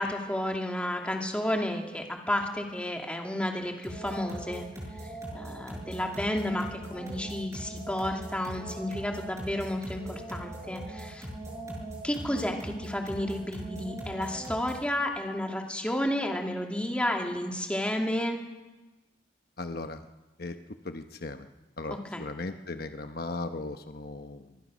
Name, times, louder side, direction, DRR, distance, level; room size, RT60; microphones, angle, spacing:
voice 1, 0.0-4.6 5.3-11.3 12.0-18.4 21.9-22.2, left 1 dB, 5° left, 2 dB, 2.6 m, -31 dB
sound 1, 3.8-14.9, right 1 dB, 15° right, 7.4 m, -40 dB
voice 2, 19.6-20.1 20.4-20.6 20.8-21.5 21.8-24.6, left 2 dB, 60° left, 7 dB, 1.1 m, -37 dB
25.0 x 22.5 x 6.3 m, 1.1 s
head